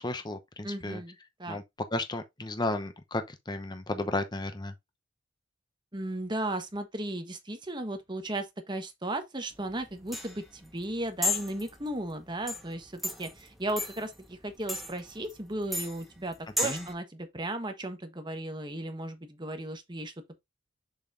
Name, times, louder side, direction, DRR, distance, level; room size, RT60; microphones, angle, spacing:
voice 1, 0.0-1.0 1.5-1.6 1.9-4.7 16.6-16.9, left 2 dB, 20° left, 0.8 m, -33 dB
voice 2, 0.6-1.6 5.9-20.1, right 1 dB, 25° right, 1.2 m, -35 dB
sound 1, 9.5-16.9, left 2 dB, ahead, 1.3 m, -36 dB
7.0 x 5.6 x 2.6 m
head